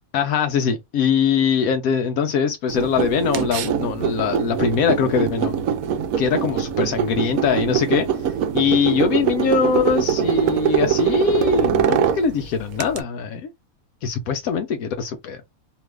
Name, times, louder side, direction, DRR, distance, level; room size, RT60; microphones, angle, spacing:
voice 1, 0.1-5.6 6.2-8.1 8.5-13.5 14.0-15.4, left 6 dB, 75° left, 1.0 m, -22 dB
sound 1, 2.7-13.0, right 9 dB, 70° right, 1.0 m, -23 dB
2.9 x 2.4 x 3.2 m
omnidirectional pair, 1.6 m